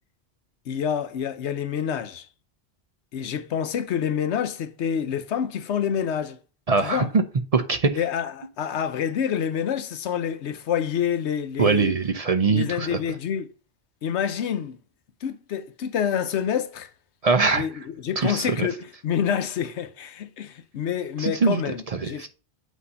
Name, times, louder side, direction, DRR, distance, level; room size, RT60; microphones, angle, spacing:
voice 1, 0.7-2.3 3.1-6.4 6.8-7.1 7.9-12.0 12.5-13.5 14.0-14.8 15.2-16.9 17.5-17.7 18.0-22.3, left 8 dB, 80° left, 1.0 m, -27 dB
voice 2, 6.7-7.2 7.5-8.0 11.6-13.0 17.2-17.7 18.2-18.7 21.2-22.3, right 4 dB, 45° right, 0.5 m, -22 dB
8.1 x 2.8 x 5.5 m
omnidirectional pair, 1.1 m